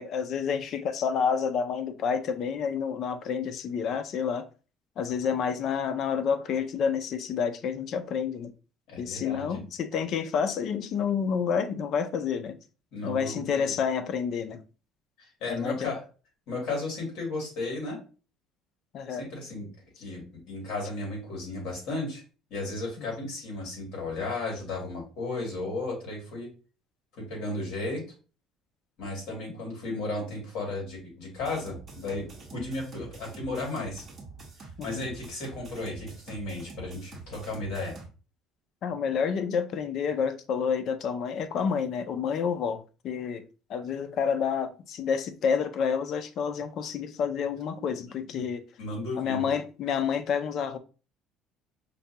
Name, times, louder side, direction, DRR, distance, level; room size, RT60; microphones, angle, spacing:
voice 1, 0.0-4.5 5.0-8.5 9.0-12.6 13.0-14.6 15.5-15.9 18.9-19.3 23.1-23.2 34.8-35.0 38.8-43.4 43.7-48.6 49.2-50.8, left 6 dB, 40° left, 0.4 m, -29 dB
voice 2, 8.9-9.6 12.9-13.7 15.2-16.0 16.5-18.0 19.1-19.7 20.0-22.2 22.5-26.5 27.1-28.0 29.0-32.2 32.5-34.0 34.8-37.9 48.3-48.4 48.8-49.4, left 2 dB, 60° left, 2.1 m, -34 dB
sound 1, 31.4-38.1, right 3 dB, 20° right, 1.0 m, -46 dB
5.2 x 2.2 x 2.7 m
cardioid pair, 170°, 0 cm